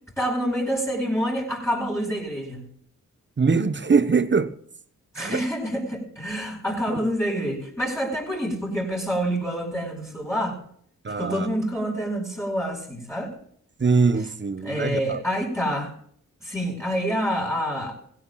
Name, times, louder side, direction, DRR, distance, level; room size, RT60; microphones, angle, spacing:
voice 1, 0.2-2.7 5.1-10.6 11.1-13.3 14.2-14.3 14.6-15.9 16.4-18.0, equal, 10° left, 5.1 m, -27 dB
voice 2, 3.4-4.5 5.2-5.4 6.9-7.0 11.0-11.5 13.8-15.2, right 4 dB, 35° right, 1.1 m, -22 dB
18.0 x 16.0 x 2.4 m
supercardioid pair, 45°, 34 cm